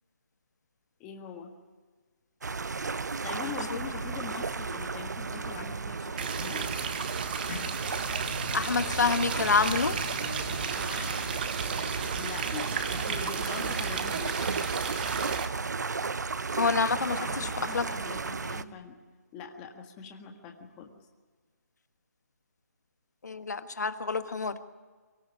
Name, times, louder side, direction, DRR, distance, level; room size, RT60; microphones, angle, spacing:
voice 1, 1.0-1.5 3.2-6.8 12.1-14.6 17.2-19.0 19.3-20.9, left 6 dB, 15° left, 2 dB, 1.7 m, -42 dB
sound 1, 2.4-18.6, right 4 dB, 85° right, 1.0 m, -34 dB
sound 2, 6.2-15.5, right 7 dB, 35° right, 1.4 m, -34 dB
sound 3, 7.3-12.6, left 4 dB, 55° left, 2.1 m, -43 dB
voice 2, 8.5-10.0 16.6-17.5 17.7-17.8 23.2-24.6, left 4 dB, 75° left, 9 dB, 1.6 m, -27 dB
23.5 x 15.5 x 9.7 m, 1.4 s
hypercardioid pair, 170°, 9 cm